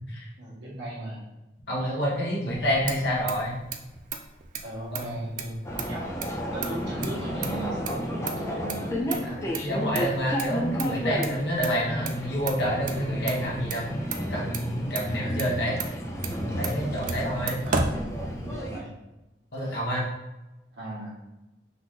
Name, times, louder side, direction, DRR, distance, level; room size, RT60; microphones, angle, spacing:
voice 1, 0.4-1.2 4.6-6.1 6.5-9.5 17.6-18.0 18.4-18.9 20.8-21.1, right 1 dB, 75° right, -7 dB, 1.5 m, -37 dB
voice 2, 1.7-3.5 4.9-5.1 9.2-9.3 9.6-14.0 14.3-15.8 16.5-17.6 19.5-20.0, equal, 65° left, -5 dB, 1.3 m, -28 dB
Motor vehicle (road), 2.5-18.7, right 5 dB, 45° right, 0.4 m, -36 dB
London Underground- Euston to Charing Cross, 5.6-18.8, equal, 15° left, 0.5 m, -32 dB
4.0 x 3.0 x 3.7 m, 0.99 s
head